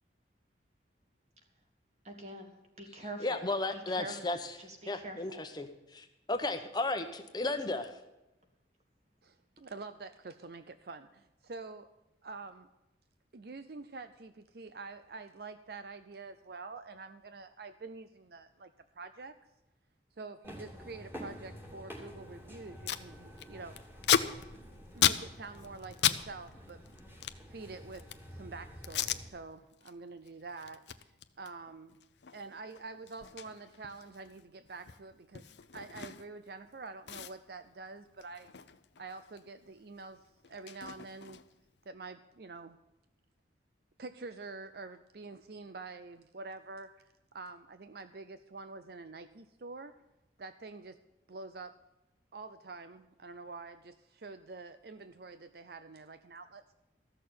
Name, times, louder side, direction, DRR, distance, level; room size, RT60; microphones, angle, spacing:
voice 1, 2.0-3.4 3.7-5.2, right 1 dB, 35° right, 4 dB, 2.1 m, -44 dB
voice 2, 3.2-4.5 4.9-5.7 5.9-7.9, left 2 dB, 20° left, 6 dB, 0.9 m, -34 dB
voice 3, 9.2-11.9 12.2-12.7 13.3-19.3 20.2-23.9 24.9-26.8 27.5-31.1 31.4-32.0 32.3-38.5 39.0-41.4 41.9-42.8 44.0-47.0 47.3-50.0 50.4-51.0 51.3-51.7 52.3-56.7, right 3 dB, 55° right, 11 dB, 0.6 m, -47 dB
sound 1, 20.4-29.3, equal, 10° right, 2.8 m, -49 dB
Packing tape duct tape, 22.3-22.4 22.6-23.1 23.4-26.2 26.5-28.3 28.8-29.2 29.7-29.9 30.2-36.5 36.7-36.8 37.1-39.4 39.7-41.7, left 9 dB, 70° left, 0.7 m, -35 dB
14.5 x 6.6 x 9.3 m, 0.98 s
head